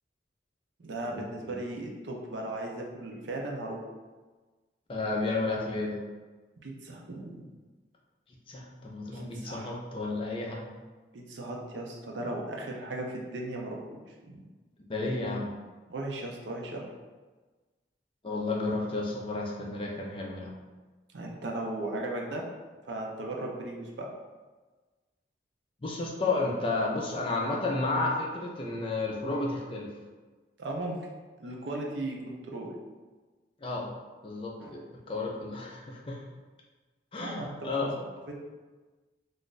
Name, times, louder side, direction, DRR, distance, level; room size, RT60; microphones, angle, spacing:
voice 1, 0.8-3.8 6.6-7.5 9.1-9.7 11.1-13.8 14.1-14.4 15.9-16.9 21.1-22.5 22.8-24.1 30.6-31.0 31.4-32.7 34.6-34.7 37.2-37.9 38.3-38.4, right 2 dB, 75° right, 0 dB, 0.6 m, -37 dB
voice 2, 4.9-6.0 8.5-10.7 14.9-15.5 18.2-20.5 25.8-29.9 33.6-33.9 34.2-34.8 35.1-36.2 37.1-37.9, left 2 dB, 30° left, -2 dB, 0.4 m, -32 dB
2.5 x 2.4 x 3.8 m, 1.3 s
head